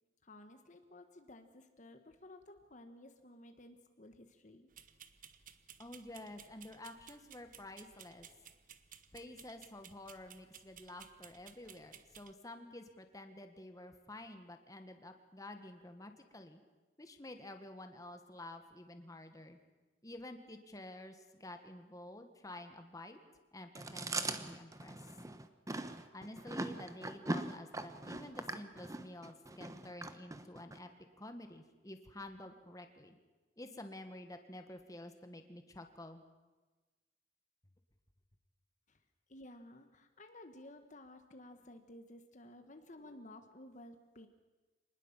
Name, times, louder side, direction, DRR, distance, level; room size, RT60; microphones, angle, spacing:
voice 1, 0.2-4.7 38.9-39.0 39.3-44.3, left 1 dB, 45° left, 6 dB, 1.5 m, -55 dB
sound 1, 4.7-12.3, right 9 dB, 50° right, 1.2 m, -58 dB
voice 2, 5.8-8.3 9.1-16.6 17.0-19.6 20.0-23.2 23.5-25.0 26.1-30.9 31.2-33.2 33.6-36.2, left 1 dB, 20° left, 6 dB, 1.7 m, -50 dB
Chewing mastication, 23.7-30.8, right 2 dB, 20° right, 1.1 m, -41 dB
25.5 x 20.0 x 7.4 m, 1.2 s
head